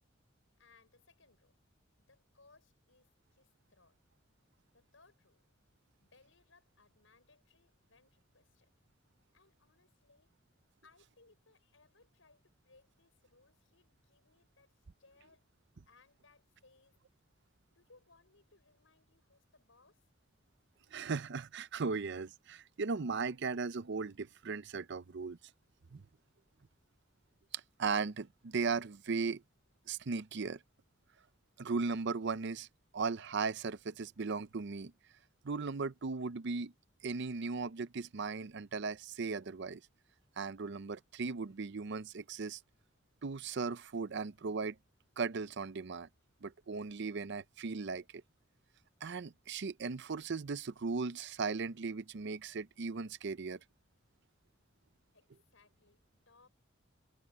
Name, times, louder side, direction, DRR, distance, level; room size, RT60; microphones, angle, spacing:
voice 1, 0.6-1.6 2.0-4.0 4.7-5.4 6.0-8.7 9.3-10.3 10.8-15.5 15.9-17.0 17.6-20.1 55.1-56.5, left 3 dB, 75° left, 6.7 m, -67 dB
voice 2, 20.9-25.4 25.9-26.0 27.5-29.4 29.9-30.6 31.6-32.7 32.9-34.9 35.4-36.7 37.0-39.8 40.4-42.6 43.2-44.8 45.2-46.1 46.4-48.0 49.0-53.6, right 4 dB, 60° right, 0.6 m, -37 dB
open air
head